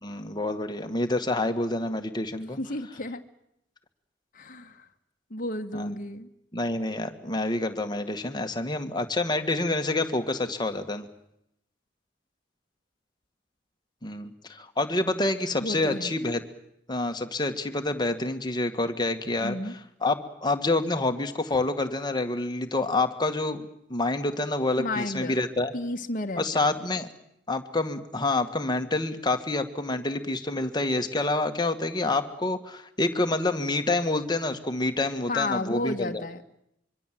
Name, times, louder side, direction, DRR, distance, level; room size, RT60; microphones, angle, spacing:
voice 1, 0.0-2.6 5.7-5.9 6.5-11.1 14.0-16.4 16.9-19.6 20.0-23.6 23.9-25.7 26.4-27.1 27.5-36.2, left 2 dB, 25° left, 6 dB, 1.9 m, -27 dB
voice 2, 2.6-3.2 4.3-4.9 5.3-6.3 15.6-16.2 19.4-19.7 24.8-25.4 25.7-26.7 35.3-36.4, left 2 dB, 45° left, 5 dB, 1.5 m, -32 dB
25.0 x 24.0 x 7.7 m, 0.78 s
head